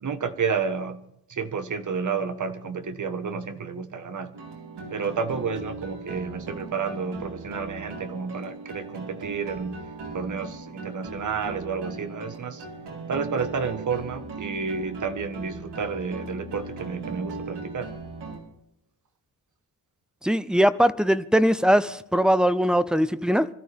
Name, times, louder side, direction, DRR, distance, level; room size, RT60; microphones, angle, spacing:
voice 1, 0.0-1.0 1.3-4.3 4.9-9.8 10.1-12.6 13.1-17.9, right 5 dB, 50° right, 1.4 m, -30 dB
sound 1, 4.3-18.4, right 3 dB, 85° right, 4.1 m, -38 dB
voice 2, 20.2-23.5, equal, ahead, 0.5 m, -21 dB
25.5 x 13.5 x 3.5 m
wide cardioid pair, 165°, 40 cm